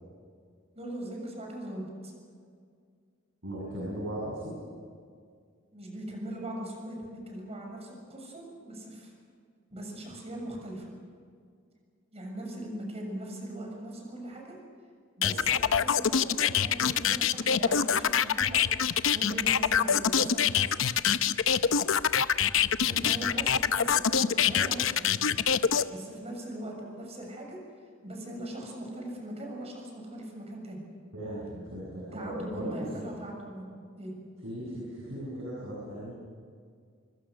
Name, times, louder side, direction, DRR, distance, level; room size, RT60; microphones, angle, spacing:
voice 1, 0.8-2.1 5.7-9.1 9.7-10.9 12.1-14.6 15.2-20.8 22.9-25.2 25.9-27.6 28.0-30.8 32.0-34.1, right 1 dB, 30° right, 1 dB, 6.9 m, -40 dB
voice 2, 3.4-4.6 31.1-33.0 34.4-36.1, right 1 dB, 80° right, -5 dB, 7.4 m, -37 dB
sound 1, 15.2-25.8, left 7 dB, 70° left, 0.8 m, -25 dB
26.5 x 24.0 x 6.4 m, 2.1 s
head